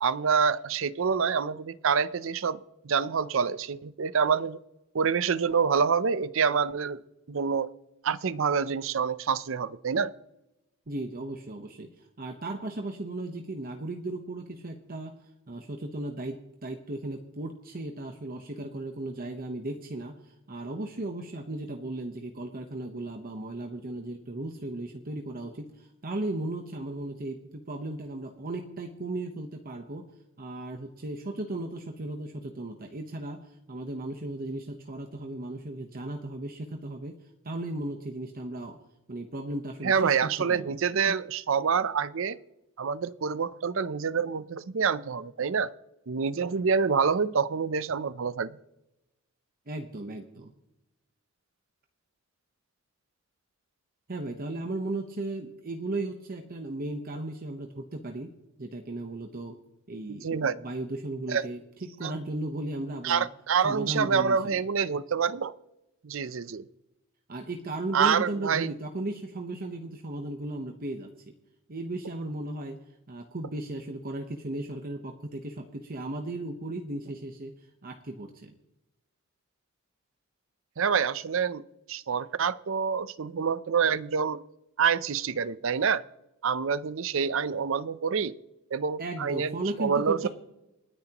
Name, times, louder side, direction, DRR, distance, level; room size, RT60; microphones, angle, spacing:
voice 1, 0.0-2.6 2.8-4.6 4.9-7.0 7.3-7.7 8.0-10.1 39.8-42.4 42.8-45.7 46.1-48.6 60.1-60.6 61.3-61.5 62.0-62.1 63.0-65.5 66.0-66.7 67.9-68.8 80.8-84.4 84.8-86.0 86.4-88.4 88.7-90.3, right 6 dB, 70° right, 17 dB, 0.6 m, -27 dB
voice 2, 10.9-15.1 15.5-30.0 30.4-33.4 33.7-37.1 37.4-38.8 39.1-40.8 49.7-50.5 54.1-58.3 58.6-59.6 59.9-60.3 60.5-61.6 62.0-63.3 63.6-64.6 67.3-71.3 71.7-72.8 73.1-77.5 77.8-78.5 89.0-90.3, right 2 dB, 45° right, 4 dB, 1.0 m, -36 dB
28.5 x 9.8 x 3.0 m, 0.95 s
head